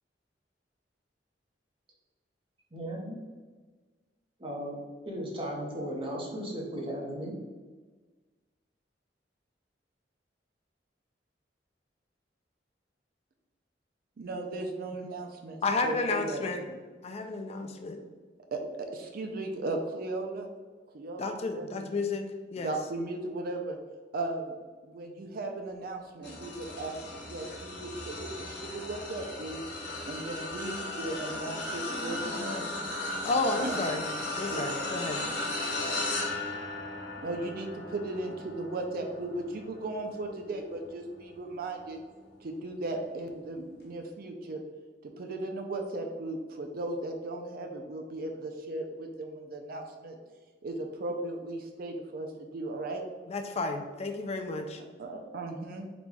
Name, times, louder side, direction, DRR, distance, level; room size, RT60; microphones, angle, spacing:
voice 1, 2.7-3.2 4.4-4.8 5.0-7.3, equal, 30° right, -2 dB, 0.9 m, -36 dB
voice 2, 14.2-16.4 18.5-20.5 20.9-21.2 21.5-21.9 22.6-23.8 24.1-24.5 24.8-29.6 30.1-32.7 33.6-33.7 34.5-34.7 37.2-42.0 42.4-44.6 45.0-50.2 50.6-53.0 55.0-55.9, right 2 dB, 55° right, 3 dB, 0.4 m, -36 dB
voice 3, 15.6-16.7 17.0-18.0 21.2-22.2 22.5-22.7 33.2-34.0 34.4-35.2 53.3-54.8, left 3 dB, 35° left, 5 dB, 0.3 m, -31 dB
sound 1, 26.2-41.7 42.3-42.5 43.8-43.9, left 2 dB, 65° left, 1.0 m, -36 dB
4.0 x 2.3 x 4.6 m, 1.4 s
head